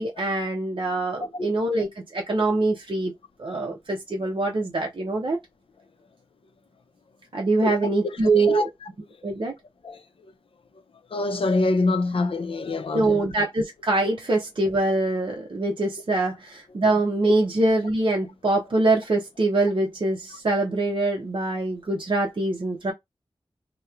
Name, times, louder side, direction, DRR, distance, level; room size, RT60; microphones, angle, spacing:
voice 1, 0.0-3.1 3.4-5.4 7.3-8.7 9.2-9.5 12.9-22.9, right 2 dB, 60° right, 0.6 m, -24 dB
voice 2, 8.3-8.7 9.8-10.0 11.1-13.2, left 3 dB, 75° left, 0.4 m, -25 dB
2.9 x 2.1 x 2.3 m
wide cardioid pair, 80°, 10 cm